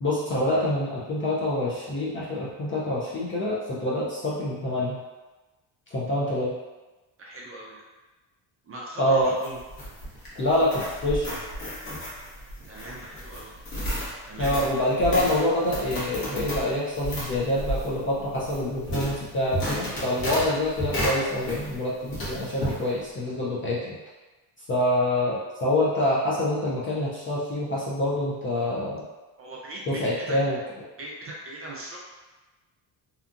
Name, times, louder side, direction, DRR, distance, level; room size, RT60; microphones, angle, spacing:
voice 1, 0.0-5.0 5.9-6.5 9.0-9.3 10.4-11.3 14.4-24.0 24.7-29.0 29.9-30.6, left 1 dB, 30° left, -6 dB, 0.4 m, -26 dB
voice 2, 7.2-7.8 8.7-9.6 12.6-13.6 14.2-14.5 29.4-30.4 31.0-32.0, right 1 dB, 30° right, -4 dB, 0.5 m, -40 dB
sound 1, 9.2-21.8 22.1-22.8, equal, 45° left, 1.1 m, -33 dB
2.8 x 2.3 x 2.5 m, 1.2 s
cardioid pair, 125°, 48 cm